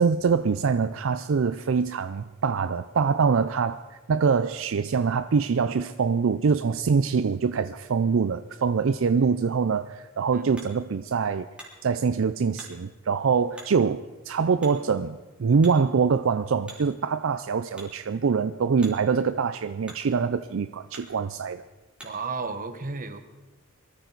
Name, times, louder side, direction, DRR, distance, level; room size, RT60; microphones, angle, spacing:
voice 1, 0.0-11.5 11.8-21.6, right 5 dB, 70° right, 0.4 m, -24 dB
Hammer, 9.7-22.4, right 1 dB, 5° right, 3.1 m, -51 dB
voice 2, 22.0-23.2, right 4 dB, 40° right, 1.1 m, -33 dB
23.0 x 14.0 x 4.0 m
head